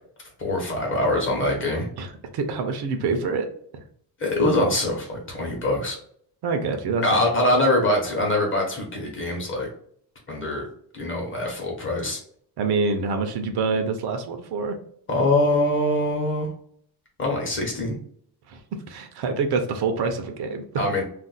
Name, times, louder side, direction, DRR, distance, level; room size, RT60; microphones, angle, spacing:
voice 1, 0.4-1.9 4.2-6.0 7.0-9.7 10.3-10.7 10.9-12.2 15.1-16.5 17.2-18.0 20.8-21.0, left 1 dB, 30° left, -1 dB, 0.9 m, -23 dB
voice 2, 2.0-3.5 6.4-7.0 12.6-14.8 18.5-20.6, right 4 dB, 65° right, 6 dB, 0.6 m, -26 dB
2.5 x 2.2 x 3.9 m, 0.62 s
cardioid pair, 170°, 42 cm